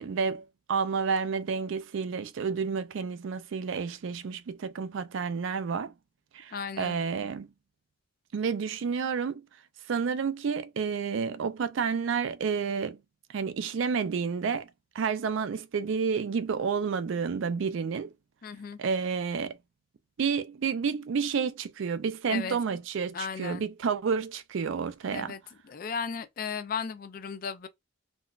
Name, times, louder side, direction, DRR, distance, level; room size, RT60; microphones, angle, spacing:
voice 1, 0.0-5.9 6.3-7.5 8.3-9.4 9.9-13.0 13.3-14.7 14.9-18.1 18.8-19.6 20.2-25.3, right 6 dB, 65° right, 0.3 m, -30 dB
voice 2, 6.5-7.0 18.4-18.8 22.3-22.6 23.1-23.6 25.1-25.4 25.6-27.7, left 6 dB, 45° left, 0.3 m, -35 dB
3.8 x 2.2 x 2.3 m
head